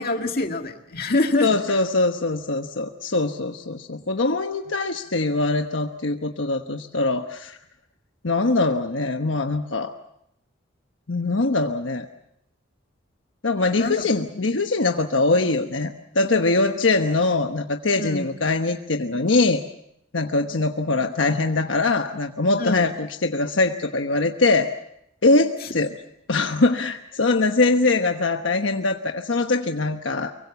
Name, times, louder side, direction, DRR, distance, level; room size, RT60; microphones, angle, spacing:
voice 1, 0.0-1.5 13.8-14.0 18.0-18.3 22.6-22.8, left 2 dB, 50° left, 4 dB, 2.2 m, -25 dB
voice 2, 1.4-7.6 8.2-9.9 11.1-12.1 13.4-19.6 20.1-24.7 25.2-25.9 26.3-30.3, left 3 dB, 80° left, 5 dB, 1.2 m, -22 dB
24.5 x 23.5 x 7.2 m, 0.77 s
head